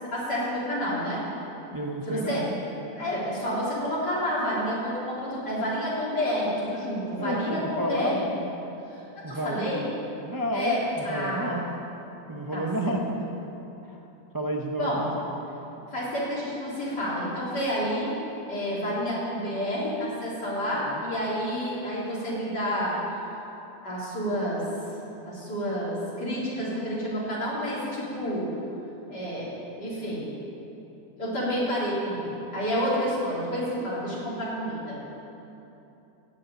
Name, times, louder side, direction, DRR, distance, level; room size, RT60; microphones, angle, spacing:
voice 1, 0.0-1.2 2.1-2.5 3.0-8.3 9.3-9.8 10.5-11.6 12.5-13.0 14.8-15.1 15.9-18.1 18.5-23.0 23.8-24.6 25.2-28.5 29.1-29.5 29.8-30.3 31.2-35.0, equal, 75° left, -8 dB, 4.2 m, -29 dB
voice 2, 1.7-2.6 7.2-8.3 9.2-9.9 10.2-11.7 12.3-13.2 13.8-14.0 14.3-15.0 15.5-15.6 20.9-21.0, equal, 25° right, 1 dB, 0.4 m, -31 dB
16.5 x 5.6 x 8.9 m, 3.0 s
omnidirectional pair, 1.8 m